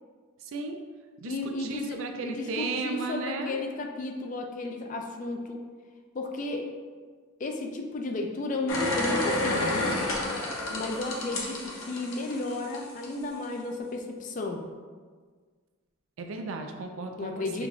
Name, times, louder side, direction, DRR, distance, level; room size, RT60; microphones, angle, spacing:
voice 1, 0.4-0.8 1.2-3.6 16.2-17.7, right 3 dB, 70° right, 4 dB, 0.4 m, -35 dB
voice 2, 1.3-5.6 6.1-6.7 7.4-10.0 10.7-14.6 17.2-17.7, left 2 dB, 35° left, 3 dB, 0.3 m, -33 dB
sound 1, 8.7-13.1 13.4-13.5, left 2 dB, 65° left, 0.7 m, -30 dB
5.7 x 2.4 x 2.4 m, 1.5 s
head